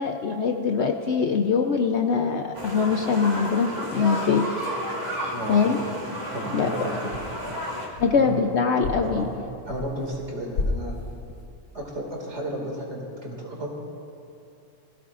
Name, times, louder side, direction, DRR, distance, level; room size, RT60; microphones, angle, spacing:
voice 1, 0.0-4.4 5.5-5.8 6.5-6.7 8.0-9.3, left 5 dB, 60° left, 4 dB, 0.8 m, -23 dB
sound 1, 2.5-7.9, equal, 20° right, 2.1 m, -32 dB
voice 2, 5.3-6.0 6.3-7.2 8.1-8.3 9.0-9.3 9.6-10.9 11.7-13.8, right 1 dB, 50° right, -2 dB, 2.5 m, -33 dB
sound 2, 6.4-6.7 7.1-8.5 8.8-10.2 10.5-11.5, left 3 dB, 85° left, 1.5 m, -33 dB
20.5 x 16.0 x 2.5 m, 2.6 s
omnidirectional pair, 1.5 m